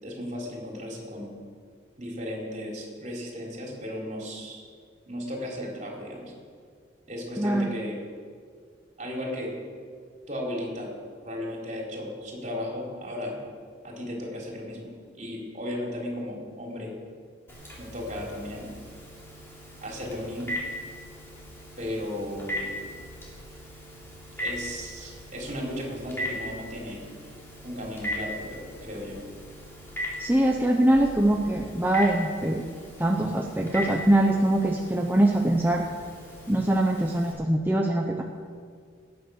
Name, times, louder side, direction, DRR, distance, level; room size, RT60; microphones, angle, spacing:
voice 1, 0.0-1.3 2.0-4.6 5.1-6.3 7.1-8.0 9.0-9.5 10.3-10.9 11.2-13.4 13.8-16.9 17.8-18.7 19.8-20.5 21.8-22.7 24.4-27.0 27.6-29.2, left 1 dB, 40° right, -2 dB, 3.8 m, -35 dB
voice 2, 7.4-7.7 30.2-32.6 33.0-35.8 36.5-38.2, right 1 dB, 10° right, 1 dB, 0.8 m, -23 dB
Telephone, 17.5-37.3, equal, 15° left, 3.7 m, -39 dB
19.5 x 9.7 x 6.4 m, 2.1 s
head